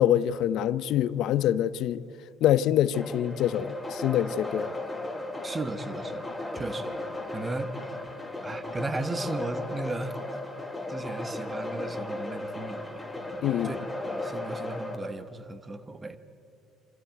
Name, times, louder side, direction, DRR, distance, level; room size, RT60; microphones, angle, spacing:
voice 1, 0.0-2.0 2.4-4.7 13.4-13.7, left 11 dB, 65° left, 0.6 m, -25 dB
sound 1, 2.9-15.0, left 2 dB, 5° left, 2.4 m, -36 dB
voice 2, 5.4-6.3 6.5-6.9 7.3-7.9 8.4-10.2 10.9-16.2, right 2 dB, 20° right, 1.2 m, -36 dB
28.0 x 12.5 x 9.3 m
cardioid pair, 120°, 0 cm